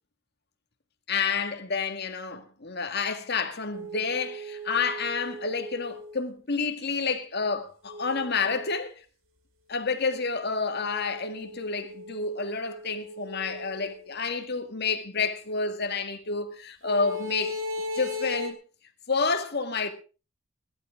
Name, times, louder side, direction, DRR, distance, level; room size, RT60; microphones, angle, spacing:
voice 1, 1.1-9.0 9.7-17.6 17.9-18.6 19.1-19.9, left 4 dB, 55° left, 1.8 m, -29 dB
sound 1, 3.7-6.2 7.9-8.8 10.0-14.1 16.8-18.5, left 2 dB, 90° right, 2.6 m, -38 dB
20.5 x 11.5 x 3.7 m
head